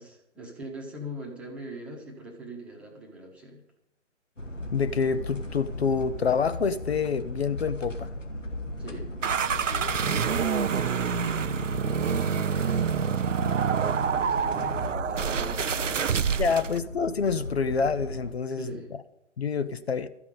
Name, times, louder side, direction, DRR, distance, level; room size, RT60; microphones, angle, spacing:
voice 1, 0.0-3.6 8.8-9.1 9.5-13.1 14.1-16.4 18.5-18.9, right 1 dB, 5° right, 1.1 m, -42 dB
sound 1, 4.4-18.3, left 1 dB, 90° left, 2.2 m, -36 dB
voice 2, 4.7-8.1 16.4-18.7 19.4-20.1, left 5 dB, 60° left, 0.7 m, -27 dB
sound 2, 9.2-16.8, right 7 dB, 90° right, 0.5 m, -27 dB
13.0 x 5.9 x 9.2 m
figure-of-eight pair, 140°, 36 cm